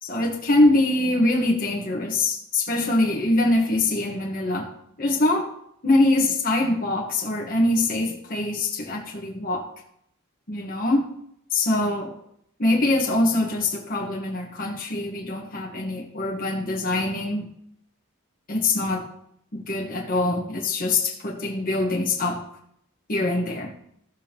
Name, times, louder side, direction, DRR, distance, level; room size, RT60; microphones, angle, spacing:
voice 1, 0.0-4.7 5.0-5.5 5.8-9.7 10.5-11.1 11.5-12.1 12.6-17.5 18.5-19.1 19.5-22.4 23.1-23.7, left 2 dB, 40° left, -1 dB, 1.3 m, -23 dB
15.0 x 7.0 x 2.9 m, 0.72 s
head